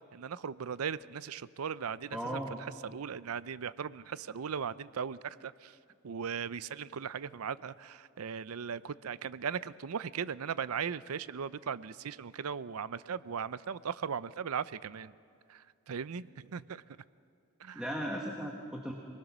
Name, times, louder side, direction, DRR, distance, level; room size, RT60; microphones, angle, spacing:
voice 1, 0.0-5.8 6.0-15.1 15.5-16.8 17.6-17.8, right 7 dB, 90° right, 17 dB, 0.5 m, -38 dB
voice 2, 2.1-2.6 17.7-18.9, equal, 5° right, 0 dB, 1.4 m, -37 dB
26.0 x 20.5 x 6.1 m, 2.3 s
head